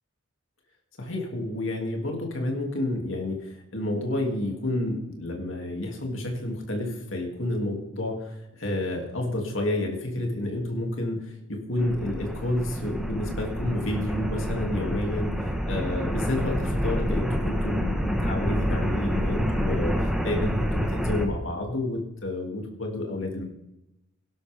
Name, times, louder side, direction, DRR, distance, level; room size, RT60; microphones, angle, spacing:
voice 1, 1.0-23.4, left 1 dB, 70° left, 1 dB, 2.8 m, -30 dB
sound 1, 11.8-21.3, equal, ahead, 1.4 m, -28 dB
18.0 x 11.5 x 3.6 m, 0.88 s
head